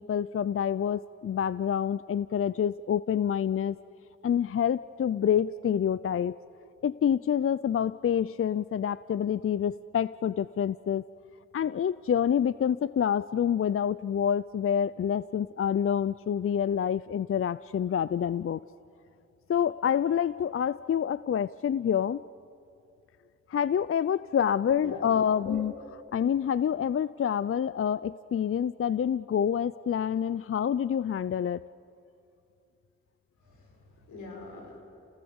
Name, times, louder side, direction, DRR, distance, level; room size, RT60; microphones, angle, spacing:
voice 1, 0.0-3.8 4.2-6.3 6.8-11.0 11.5-18.6 19.5-22.2 23.5-25.7 26.1-31.6, left 8 dB, 50° left, 17 dB, 0.5 m, -27 dB
voice 2, 24.7-25.6 33.4-34.8, left 3 dB, 90° left, 0 dB, 5.2 m, -43 dB
29.5 x 19.0 x 7.1 m, 2.6 s
cardioid pair, 45°, 29 cm